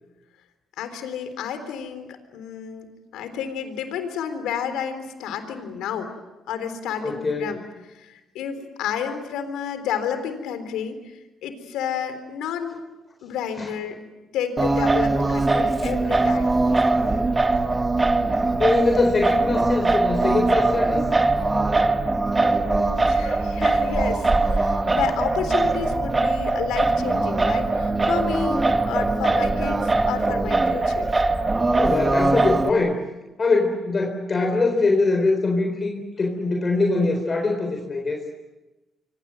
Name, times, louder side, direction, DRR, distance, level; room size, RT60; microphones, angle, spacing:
voice 1, 0.8-6.1 6.5-7.6 7.9-12.8 13.2-14.0 14.3-16.5 22.6-31.1, left 8 dB, 90° left, 9 dB, 3.7 m, -31 dB
voice 2, 7.0-7.5 13.6-13.7 18.6-21.1 31.8-33.0 33.4-38.2, left 3 dB, 35° left, 3 dB, 4.1 m, -22 dB
Singing, 14.6-32.7, right 2 dB, 25° right, 1.8 m, -21 dB
27.0 x 24.5 x 7.8 m, 1.1 s
cardioid pair, 90°, 0 cm